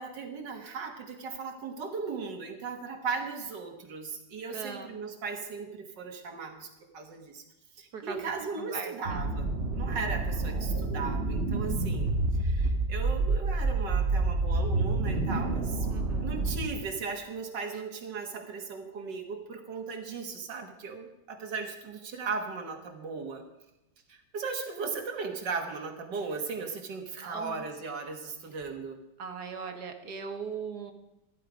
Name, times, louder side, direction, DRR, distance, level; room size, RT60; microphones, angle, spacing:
voice 1, 0.0-7.4 7.8-15.8 16.2-23.4 24.1-29.0, right 4 dB, 80° right, 4 dB, 2.2 m, -37 dB
voice 2, 4.5-4.9 7.9-9.2 15.9-16.4 27.2-27.6 29.2-30.9, right 6 dB, 65° right, 6 dB, 1.9 m, -40 dB
sound 1, 9.0-16.7, right 3 dB, 35° right, 1.6 m, -28 dB
14.0 x 12.5 x 5.1 m, 0.92 s
omnidirectional pair, 1.9 m